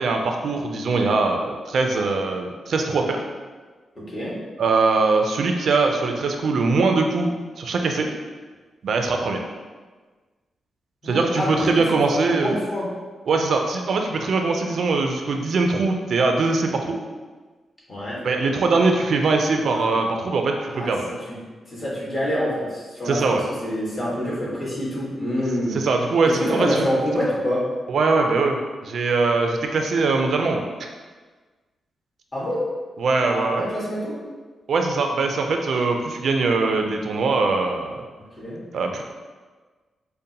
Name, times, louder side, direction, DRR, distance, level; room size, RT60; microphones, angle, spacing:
voice 1, 0.0-3.2 4.6-8.1 8.8-9.4 11.0-12.6 13.3-17.0 18.2-21.1 23.1-23.4 25.7-26.8 27.9-30.6 33.0-33.7 34.7-38.0 38.7-39.0, right 3 dB, 70° right, 3 dB, 0.3 m, -22 dB
voice 2, 3.9-4.3 11.0-12.9 17.9-18.2 19.6-19.9 20.7-20.9 21.3-21.4 21.7-23.4 23.6-25.8 26.2-27.6 32.3-32.6 33.2-34.1 38.4-38.6, equal, 40° left, -6 dB, 1.5 m, -26 dB
5.1 x 2.1 x 2.7 m, 1.4 s
cardioid pair, 70°, 0 cm